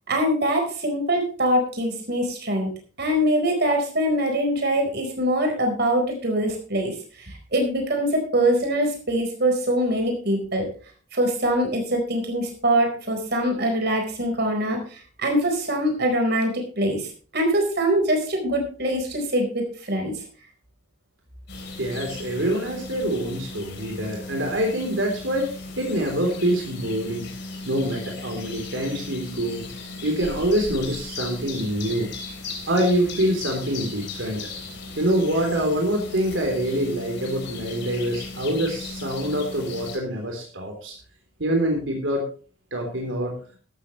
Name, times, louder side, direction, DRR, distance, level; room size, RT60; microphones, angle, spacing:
voice 1, 0.1-2.7 3.0-6.9 7.3-10.7 11.1-16.5 16.8-17.1 17.3-20.2, right 1 dB, 55° right, 3 dB, 4.4 m, -23 dB
sound 1, 21.5-40.0, left 3 dB, 60° left, 3.5 m, -37 dB
voice 2, 21.8-27.3 27.7-29.6 30.0-32.1 32.7-34.5 35.0-40.9 41.4-42.2 42.7-43.4, right 1 dB, 80° right, 1 dB, 3.6 m, -25 dB
13.5 x 13.0 x 3.2 m, 0.40 s
head